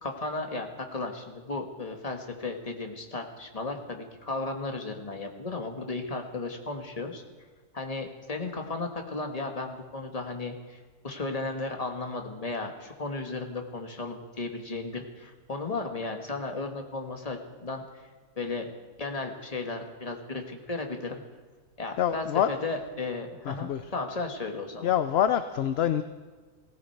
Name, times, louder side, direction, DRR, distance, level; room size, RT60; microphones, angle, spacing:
voice 1, 0.0-7.2 7.7-18.0 18.4-18.7 19.0-21.2 21.8-24.9, left 3 dB, 30° left, 4 dB, 1.5 m, -35 dB
voice 2, 22.0-22.5 23.5-23.8 24.8-26.0, left 10 dB, 60° left, 10 dB, 0.7 m, -25 dB
17.5 x 15.5 x 4.6 m, 1.4 s
omnidirectional pair, 1.4 m